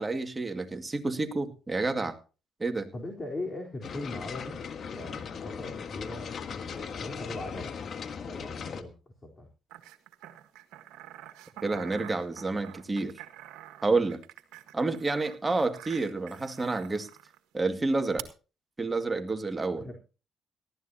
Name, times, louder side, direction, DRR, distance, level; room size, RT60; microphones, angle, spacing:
voice 1, 0.0-2.1 2.6-2.9 11.6-13.2 13.8-14.2 14.7-17.1 17.5-18.2 18.8-19.9, right 3 dB, 25° right, 6 dB, 2.1 m, -29 dB
voice 2, 2.9-4.6 4.9-7.7 8.2-8.9 9.2-9.5 19.8-20.0, left 2 dB, 30° left, 1 dB, 3.9 m, -40 dB
sound 1, 3.8-8.8, left 6 dB, 55° left, 1.5 m, -38 dB
sound 2, 9.7-17.4 18.2-18.3, right 14 dB, 85° right, 1.5 m, -47 dB
18.5 x 13.5 x 2.8 m, 0.34 s
supercardioid pair, 70°, 0 cm